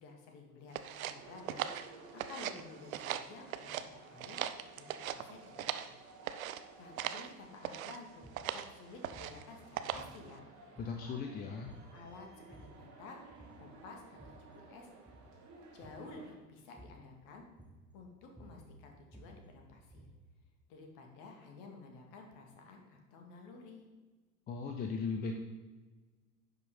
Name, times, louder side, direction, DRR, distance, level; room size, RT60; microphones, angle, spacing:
voice 1, 0.0-1.9 2.1-4.4 4.8-5.9 6.8-8.3 8.5-10.4 11.9-12.3 12.6-13.2 13.6-14.9 15.7-17.4 17.9-20.1 20.7-23.9, left 3 dB, 40° left, 2 dB, 2.2 m, -52 dB
sound 1, 0.7-2.6 2.9-3.9 4.2-5.9 6.3-6.6 7.0-7.3 7.6-8.0 8.4-8.7 9.0-9.4 9.8-10.2, right 10 dB, 55° right, 0.7 m, -39 dB
sound 2, 1.1-16.3, right 3 dB, 35° right, 2.8 m, -56 dB
sound 3, 8.1-8.5 9.1-9.4 9.9-10.4 10.8-11.2 11.7-12.0 12.3-12.9 13.3-13.7 14.0-14.5 15.0-15.4 15.8-16.1 16.8-17.1 17.6-18.0 18.2-20.3, right 1 dB, 5° right, 1.2 m, -56 dB
voice 2, 10.8-11.7 24.5-25.4, left 5 dB, 20° left, 3 dB, 0.7 m, -37 dB
10.5 x 5.9 x 5.4 m, 1.3 s
figure-of-eight pair, 90°, 48 cm